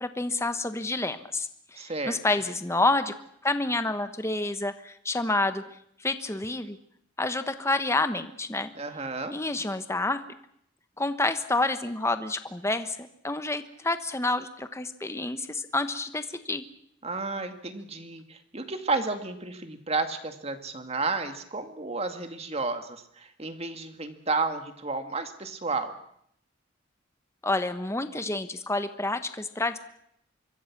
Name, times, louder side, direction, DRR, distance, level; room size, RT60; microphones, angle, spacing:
voice 1, 0.0-3.1 3.4-5.6 6.0-6.8 7.2-8.7 9.3-10.2 11.0-13.0 13.2-16.6 27.4-29.8, left 2 dB, 15° left, 10 dB, 1.2 m, -28 dB
voice 2, 1.8-2.2 8.8-9.3 17.0-25.9, right 3 dB, 30° right, 7 dB, 2.1 m, -32 dB
26.0 x 23.0 x 6.1 m, 0.71 s
head